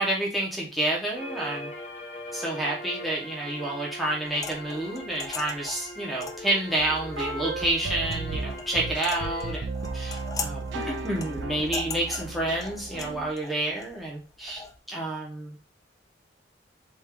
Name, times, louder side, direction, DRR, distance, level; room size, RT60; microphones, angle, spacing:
voice 1, 0.0-1.7 2.3-15.6, right 1 dB, ahead, -5 dB, 0.9 m, -29 dB
sound 1, 1.2-9.6, left 1 dB, 40° left, 0.8 m, -41 dB
sound 2, 4.2-14.7, left 4 dB, 20° left, 0.4 m, -41 dB
sound 3, 6.8-13.3, right 3 dB, 80° right, 0.5 m, -35 dB
3.7 x 2.6 x 4.5 m, 0.34 s
head